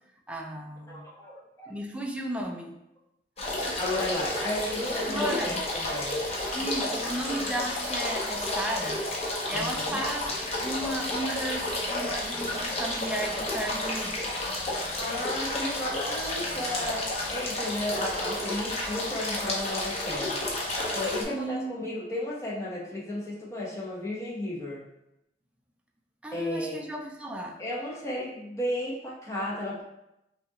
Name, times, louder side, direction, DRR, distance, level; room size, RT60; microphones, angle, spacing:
voice 1, 0.3-1.0 1.7-2.8 3.6-3.8 5.1-5.7 6.5-9.0 9.5-10.3 10.6-14.2 21.3-21.7 26.2-27.6, right 1 dB, 5° right, 0 dB, 0.4 m, -34 dB
voice 2, 0.9-1.7 3.8-6.3 9.5-10.0 15.0-24.8 26.3-26.8 27.6-29.8, left 1 dB, 15° left, -5 dB, 0.9 m, -34 dB
sound 1, 3.4-21.2, left 1 dB, 35° left, 0.7 m, -31 dB
5.1 x 2.4 x 2.9 m, 0.86 s
head